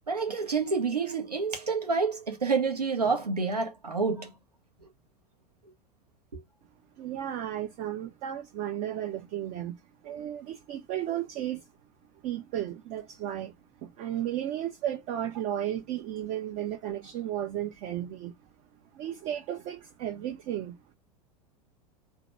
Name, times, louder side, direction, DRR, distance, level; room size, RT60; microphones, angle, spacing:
voice 1, 0.1-4.3 4.8-4.9 6.3-6.4, right 4 dB, 85° right, 0.8 m, -28 dB
voice 2, 7.0-11.7 12.2-13.5 13.8-18.3 18.9-20.8, right 11 dB, 40° right, 0.5 m, -34 dB
2.8 x 2.2 x 3.0 m
figure-of-eight pair, 80°, 20 cm